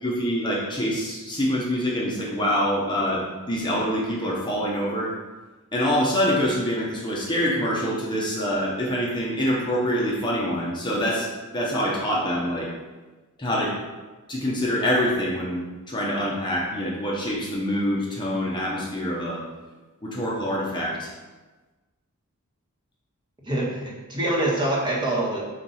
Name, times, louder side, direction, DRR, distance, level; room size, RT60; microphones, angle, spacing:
voice 1, 0.0-5.1 5.7-12.7 13.4-13.8 14.3-19.4 20.0-21.1, equal, 20° left, -4 dB, 1.0 m, -25 dB
voice 2, 23.4-25.4, right 1 dB, 20° right, -4 dB, 1.3 m, -25 dB
4.5 x 4.3 x 5.5 m, 1.2 s
head